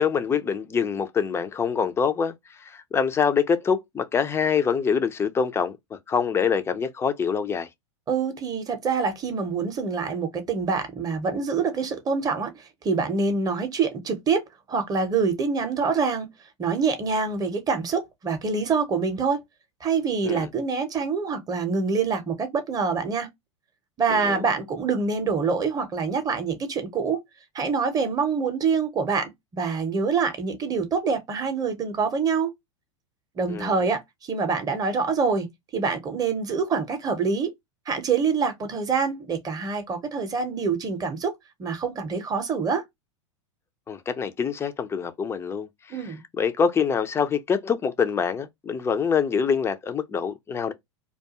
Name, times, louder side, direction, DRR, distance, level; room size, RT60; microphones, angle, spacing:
voice 1, 0.0-7.7 20.2-20.5 24.1-24.4 33.5-33.8 43.9-46.0 46.4-50.7, left 6 dB, 15° left, 0.4 m, -25 dB
voice 2, 8.1-16.3 16.6-19.4 19.8-23.3 24.0-27.2 27.5-32.5 33.4-35.5 35.7-37.5 37.9-41.3 41.6-42.8 45.9-46.2, right 5 dB, 25° right, 0.7 m, -25 dB
2.3 x 2.3 x 2.7 m
hypercardioid pair, 100°, 16 cm